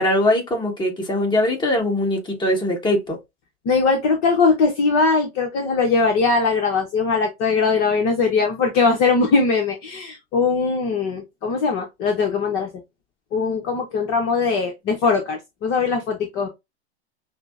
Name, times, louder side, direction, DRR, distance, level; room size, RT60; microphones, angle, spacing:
voice 1, 0.0-3.2, left 1 dB, 15° left, 1.4 m, -21 dB
voice 2, 3.7-12.7 13.3-16.5, left 4 dB, 35° left, 0.8 m, -20 dB
5.8 x 2.0 x 2.4 m
figure-of-eight pair, 100°, 34 cm